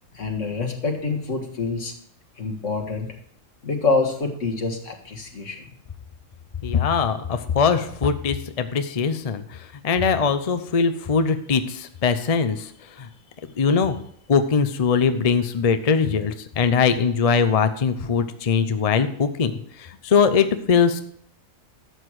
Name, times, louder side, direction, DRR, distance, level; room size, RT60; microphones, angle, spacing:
voice 1, 0.1-1.9 2.4-3.1 3.6-5.7, left 3 dB, 70° left, 3 dB, 2.1 m, -26 dB
voice 2, 6.6-9.6 9.8-12.7 13.0-13.1 13.6-14.0 14.3-19.5 19.8-21.0, left 6 dB, 35° left, 9 dB, 0.6 m, -21 dB
12.5 x 8.1 x 4.8 m, 0.66 s
omnidirectional pair, 1.3 m